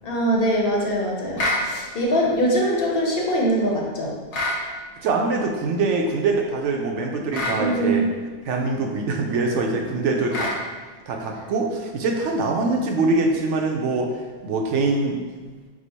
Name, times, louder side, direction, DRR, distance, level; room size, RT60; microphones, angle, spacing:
voice 1, 0.0-4.1 7.5-8.0, right 1 dB, 55° left, -2 dB, 0.9 m, -22 dB
sound 1, 1.4-1.7 4.3-4.6 7.3-7.6 10.3-10.6, left 1 dB, 75° left, 1.1 m, -25 dB
voice 2, 5.0-8.1 8.5-10.5 11.1-14.1 14.4-15.2, right 3 dB, 85° right, 2 dB, 0.9 m, -23 dB
5.0 x 2.1 x 4.0 m, 1.4 s
omnidirectional pair, 1.2 m